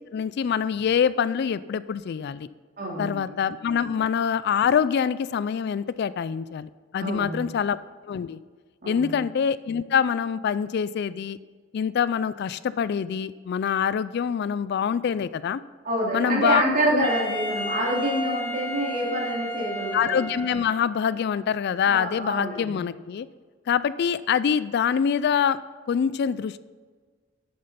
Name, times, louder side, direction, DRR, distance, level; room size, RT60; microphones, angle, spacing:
voice 1, 0.1-2.5 3.0-7.8 8.1-8.4 8.9-11.4 11.7-15.6 16.1-16.6 16.9-17.1 19.9-23.3 23.7-25.6 25.9-26.6, left 7 dB, 55° left, 16 dB, 0.3 m, -25 dB
voice 2, 2.8-3.3 7.0-7.4 8.8-9.1 15.8-20.2 21.8-22.8, right 1 dB, 45° right, -4 dB, 3.4 m, -27 dB
Wind instrument woodwind instrument, 17.0-21.0, equal, 10° left, 1.6 m, -33 dB
10.5 x 8.5 x 5.8 m, 1.5 s
head